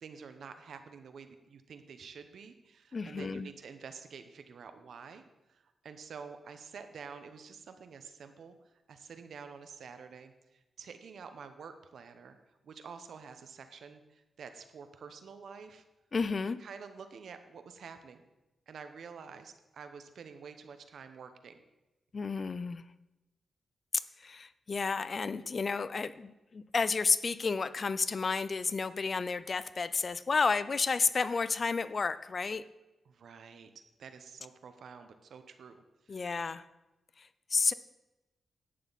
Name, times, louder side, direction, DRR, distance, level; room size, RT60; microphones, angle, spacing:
voice 1, 0.0-5.2 5.5-8.5 8.9-12.4 12.6-15.8 16.6-18.2 18.7-21.6 33.1-33.7 34.0-36.4, right 6 dB, 75° right, 9 dB, 1.0 m, -49 dB
voice 2, 2.9-3.5 16.1-16.6 22.1-22.8 24.2-32.6 36.1-36.6 37.2-37.7, left 4 dB, 45° left, 15 dB, 0.5 m, -31 dB
11.0 x 9.1 x 4.1 m, 1.0 s
cardioid pair, 80°, 0 cm